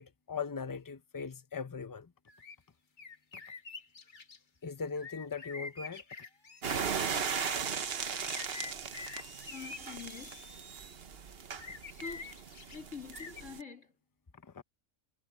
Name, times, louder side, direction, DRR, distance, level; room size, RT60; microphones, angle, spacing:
voice 1, 0.0-2.1 4.6-6.0 14.4-14.6, left 5 dB, 20° left, 0.6 m, -39 dB
sound 1, 2.3-2.5 3.0-4.4 4.9-7.3 8.1-10.6 11.6-12.8 13.1-13.4, left 4 dB, 40° left, 1.3 m, -46 dB
sound 2, 6.2-11.0, right 1 dB, 15° right, 4.5 m, -57 dB
sound 3, 6.6-13.6, right 6 dB, 50° right, 1.1 m, -38 dB
voice 2, 9.5-10.5 11.9-12.4 12.7-14.0, left 5 dB, 60° left, 3.6 m, -46 dB
omnidirectional pair, 1.4 m